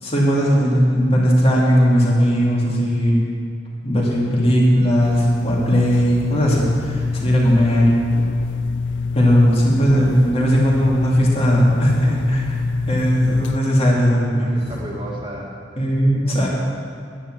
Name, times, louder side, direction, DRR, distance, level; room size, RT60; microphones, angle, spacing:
voice 1, 0.0-3.2 3.8-7.9 9.1-12.5 12.9-14.6 15.8-16.5, equal, 35° left, -4 dB, 2.5 m, -17 dB
sound 1, 5.0-13.6, left 4 dB, 75° left, 0.3 m, -25 dB
voice 2, 14.3-15.6 16.2-16.5, equal, 25° right, -3 dB, 2.2 m, -34 dB
10.5 x 10.0 x 6.1 m, 2.4 s
head